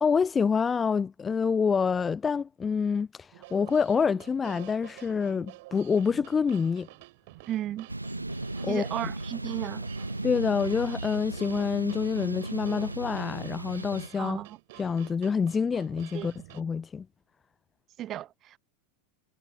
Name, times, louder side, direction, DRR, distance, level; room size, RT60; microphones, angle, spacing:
voice 1, 0.0-6.9 8.6-8.8 10.2-14.4 14.8-17.1, left 6 dB, 15° left, 0.3 m, -27 dB
sound 1, 3.3-16.6, right 21 dB, 50° right, 7.9 m, -49 dB
voice 2, 7.5-7.9 8.7-9.8 14.2-14.6 16.1-16.3 18.0-18.6, right 12 dB, 30° right, 0.6 m, -34 dB
sound 2, 7.9-14.1, right 2 dB, 85° right, 0.5 m, -36 dB
figure-of-eight pair, 90°, 0 cm